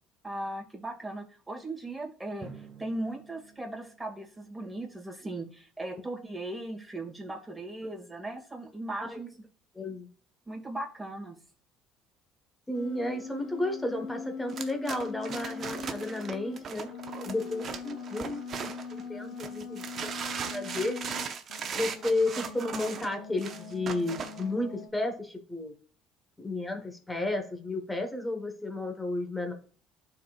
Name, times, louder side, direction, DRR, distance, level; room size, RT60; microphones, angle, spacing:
voice 1, 0.2-9.3 10.5-11.4, right 1 dB, 10° right, -1 dB, 2.3 m, -38 dB
Drum, 2.4-5.1, right 4 dB, 30° right, 1.6 m, -51 dB
voice 2, 9.7-10.1 12.7-16.9 17.2-19.9 20.5-21.0 21.8-25.7 26.4-29.5, left 2 dB, 10° left, 5 dB, 1.3 m, -32 dB
sound 1, 12.7-21.2 21.5-24.9, left 5 dB, 75° left, 1.1 m, -42 dB
sound 2, 14.5-19.0 19.4-24.4, right 6 dB, 45° right, 0.8 m, -38 dB
12.0 x 4.3 x 2.5 m, 0.41 s
supercardioid pair, 95°, 0 cm